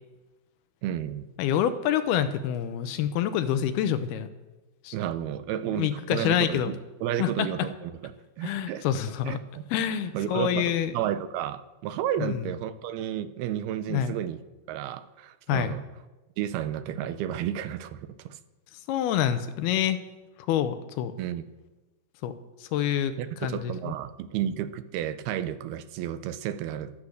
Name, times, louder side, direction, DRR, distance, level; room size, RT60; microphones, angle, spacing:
voice 1, 0.8-1.3 4.9-8.1 8.4-8.9 9.3-9.6 10.1-14.4 14.7-15.9 16.4-18.4 21.2-21.4 23.2-26.9, right 10 dB, 85° right, 12 dB, 2.7 m, -32 dB
voice 2, 1.4-4.3 4.8-4.9 5.7-6.7 7.2-7.5 8.4-9.4 9.7-10.9 12.2-12.4 13.9-14.1 15.5-15.8 18.9-20.0 20.5-21.1 22.2-22.3 22.7-23.1 23.4-23.7, left 10 dB, 85° left, 10 dB, 2.8 m, -26 dB
23.0 x 8.7 x 6.5 m, 1.2 s
omnidirectional pair, 4.5 m